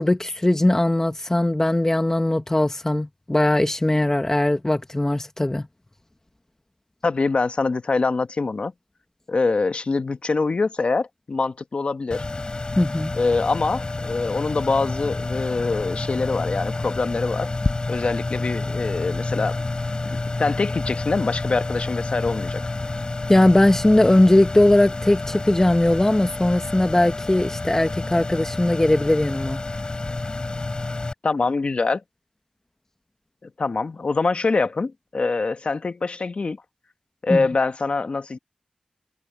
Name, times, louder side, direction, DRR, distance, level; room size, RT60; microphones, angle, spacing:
voice 1, 0.0-5.7 12.8-13.1 23.3-29.6 37.3-37.4, left 1 dB, 20° left, 1.8 m, -19 dB
voice 2, 7.0-8.7 9.3-12.2 13.1-17.5 17.9-19.7 20.0-22.6 31.2-32.0 33.4-36.6 37.2-38.4, left 3 dB, 60° left, 1.3 m, -24 dB
sound 1, 12.1-31.1, left 2 dB, 40° left, 4.0 m, -29 dB
cardioid pair, 50°, 2 cm